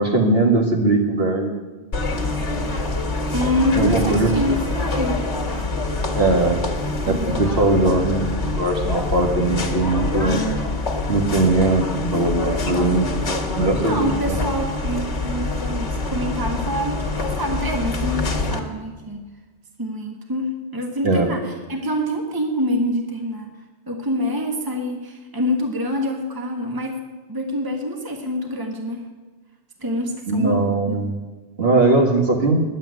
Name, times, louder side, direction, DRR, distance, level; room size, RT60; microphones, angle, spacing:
voice 1, 0.0-1.6 3.8-4.3 6.1-6.6 7.1-10.4 11.1-14.4 21.0-21.3 30.3-31.2 31.6-32.6, right 2 dB, 60° right, 0 dB, 2.0 m, -20 dB
sound 1, 1.9-18.6, left 2 dB, 80° left, 1.8 m, -25 dB
voice 2, 3.3-5.2 7.0-7.5 13.9-19.3 19.8-23.5 23.9-27.0 27.3-29.1 29.8-31.1, equal, 20° right, 2 dB, 1.5 m, -26 dB
10.5 x 8.1 x 9.6 m, 1.3 s
omnidirectional pair, 1.2 m